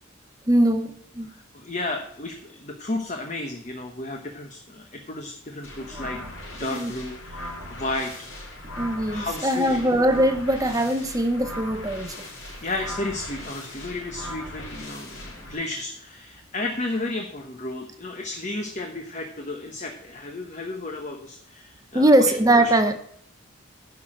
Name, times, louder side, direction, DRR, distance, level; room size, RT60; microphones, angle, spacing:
voice 1, 0.5-1.3 5.9-6.1 6.6-6.9 8.8-12.1 21.9-22.9, right 1 dB, 15° right, 8 dB, 0.7 m, -21 dB
voice 2, 1.3-8.1 9.0-9.8 12.6-22.1 22.6-22.7, left 2 dB, 35° left, 3 dB, 1.0 m, -33 dB
sound 1, 5.6-15.5, left 1 dB, 70° left, 4.3 m, -38 dB
10.5 x 6.0 x 6.3 m, 0.66 s
head